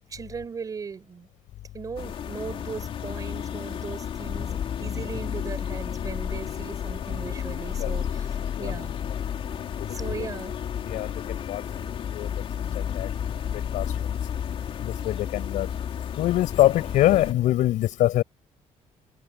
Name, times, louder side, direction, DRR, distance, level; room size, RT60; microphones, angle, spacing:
voice 1, 0.1-1.3 1.7-8.0 8.6-8.9 9.9-10.5, right 5 dB, 25° right, 6.5 m, -37 dB
sound 1, 2.0-17.3, left 8 dB, 45° left, 3.7 m, -32 dB
voice 2, 14.8-15.7 16.2-18.2, left 14 dB, 85° left, 6.8 m, -23 dB
cardioid pair, 170°, 13 cm